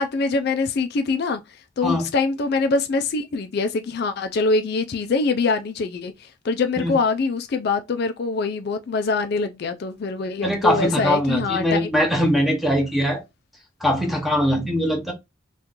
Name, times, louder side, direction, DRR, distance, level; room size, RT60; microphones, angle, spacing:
voice 1, 0.0-1.4 1.8-6.1 6.4-11.9, left 3 dB, 50° left, 0.3 m, -24 dB
voice 2, 10.4-13.2 13.8-15.1, equal, ahead, 0.8 m, -21 dB
2.9 x 2.4 x 3.6 m
head